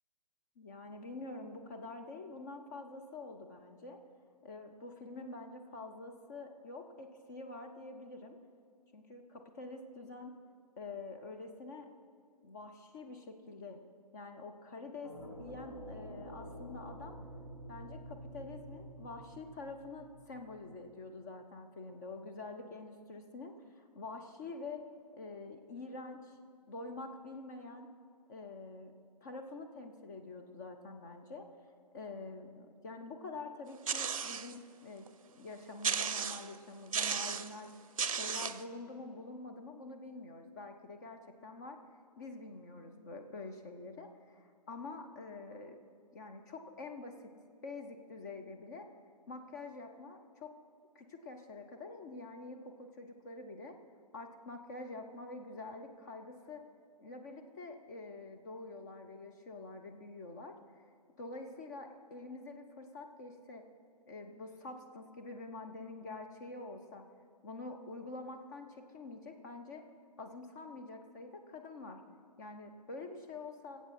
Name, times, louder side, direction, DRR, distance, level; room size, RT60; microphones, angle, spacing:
voice 1, 0.6-4.0 4.4-8.4 8.9-10.3 10.8-11.9 12.4-13.8 14.1-15.1 15.4-17.2 17.7-24.8 25.1-26.4 26.7-27.9 28.3-28.9 29.2-31.5 31.9-35.1 35.3-37.7 38.1-41.8 42.2-45.8 46.1-47.3 47.6-48.9 49.3-50.5 50.9-53.8 54.1-56.6 57.0-60.6 61.2-63.6 64.1-67.0 67.4-69.8 70.2-72.0 72.4-73.8, left 3 dB, 25° left, 4 dB, 0.7 m, -46 dB
sound 1, 15.0-20.9, right 1 dB, 55° left, 2.5 m, -49 dB
sound 2, 33.9-34.6 35.1-35.2 35.8-36.6 36.9-37.5 38.0-38.6, right 6 dB, 55° right, 0.6 m, -34 dB
21.0 x 8.2 x 4.3 m, 2.2 s
figure-of-eight pair, 135°, 21 cm